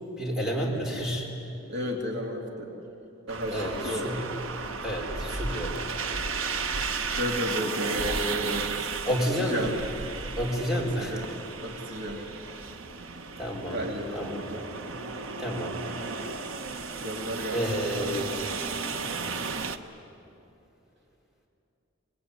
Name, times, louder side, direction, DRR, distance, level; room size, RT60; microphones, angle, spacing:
voice 1, 0.2-1.3 3.5-4.3 4.8-5.8 9.0-9.7 10.4-11.3 13.4-13.8 14.1-14.5 15.4-15.8 16.1-16.3 17.5-18.3 19.2-19.8, equal, ahead, -2 dB, 4.4 m, -30 dB
voice 2, 1.7-2.7 3.3-4.1 7.0-8.7 9.5-9.7 11.0-11.2 11.6-12.2 13.7-15.1 17.0-17.6, equal, 60° right, 0 dB, 3.0 m, -33 dB
sound 1, 3.3-19.8, right 4 dB, 85° right, 1.2 m, -34 dB
26.5 x 20.5 x 9.9 m, 2.9 s
head